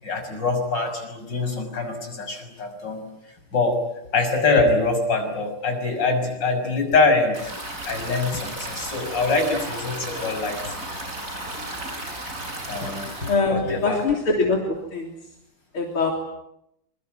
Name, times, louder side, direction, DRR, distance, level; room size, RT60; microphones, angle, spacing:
voice 1, 0.0-3.0 3.5-3.8 4.1-7.5 7.8-10.7 12.7-14.0, left 3 dB, 55° left, 5 dB, 6.9 m, -24 dB
Stream, 7.3-13.3, right 1 dB, 35° right, 7.6 m, -34 dB
voice 2, 13.3-15.1 15.7-16.1, left 3 dB, 75° left, 1 dB, 4.1 m, -23 dB
26.0 x 24.0 x 9.1 m, 0.80 s
omnidirectional pair, 2.4 m